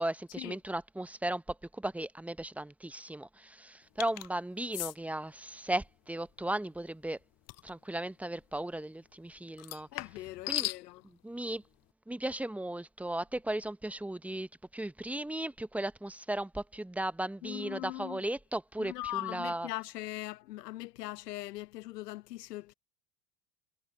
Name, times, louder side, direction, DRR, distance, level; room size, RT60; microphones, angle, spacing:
voice 1, 0.0-7.2 7.6-9.9 10.5-10.7 11.0-11.6 12.1-18.9 19.2-19.7, right 1 dB, 5° right, 0.8 m, -36 dB
sound 1, 4.0-4.3 4.7-4.9 7.5-7.7 9.6-10.8, left 19 dB, 35° left, 0.4 m, -36 dB
voice 2, 9.9-11.0 17.4-18.2 18.8-22.7, left 16 dB, 85° left, 0.9 m, -40 dB
hypercardioid pair, 85°, 47 cm